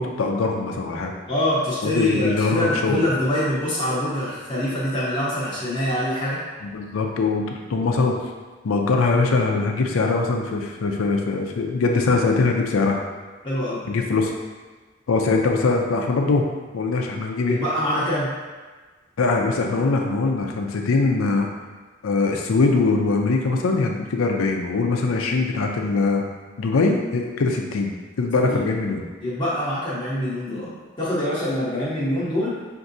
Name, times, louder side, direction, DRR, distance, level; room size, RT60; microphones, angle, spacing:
voice 1, 0.0-1.1 1.8-3.0 6.6-7.4 7.7-8.2 8.6-13.0 13.9-14.3 15.1-16.5 16.7-17.6 19.2-21.5 22.0-26.2 26.6-27.9 28.2-29.0, left 3 dB, 90° left, 2 dB, 0.5 m, -22 dB
voice 2, 1.3-6.4 13.4-13.8 17.5-18.3 28.5-28.7 29.2-30.7 31.0-32.6, equal, 25° left, -9 dB, 0.7 m, -24 dB
5.9 x 2.6 x 2.6 m, 1.4 s
head